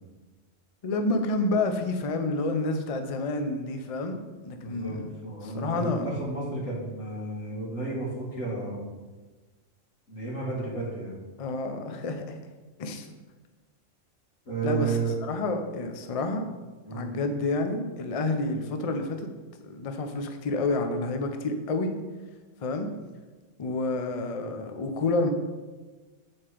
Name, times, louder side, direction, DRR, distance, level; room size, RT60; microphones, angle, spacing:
voice 1, 0.8-4.2 4.4-5.1 5.4-6.1 11.4-12.4 12.8-13.1 14.6-16.4 16.9-19.3 19.6-21.9 22.6-22.9 23.6-25.3, left 2 dB, 40° left, 6 dB, 0.5 m, -29 dB
voice 2, 4.6-5.0 5.2-8.8 10.1-11.2 14.5-15.2 16.9-17.2, right 4 dB, 90° left, -4 dB, 2.4 m, -32 dB
7.6 x 4.4 x 4.9 m, 1.3 s
omnidirectional pair, 1.3 m